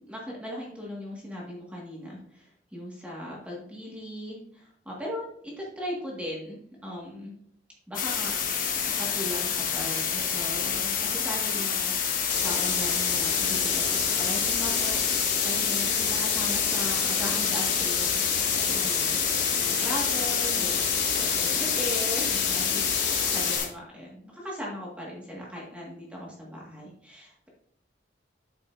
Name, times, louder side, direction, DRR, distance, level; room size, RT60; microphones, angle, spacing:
voice 1, 0.1-7.3 7.9-11.9 12.3-19.2 19.6-22.9 23.3-27.5, equal, 5° right, -4 dB, 1.8 m, -38 dB
sound 1, 7.9-23.7, left 7 dB, 50° left, 1.3 m, -28 dB
sound 2, 12.3-23.6, left 5 dB, 90° left, 2.0 m, -29 dB
9.7 x 6.8 x 2.6 m, 0.67 s
head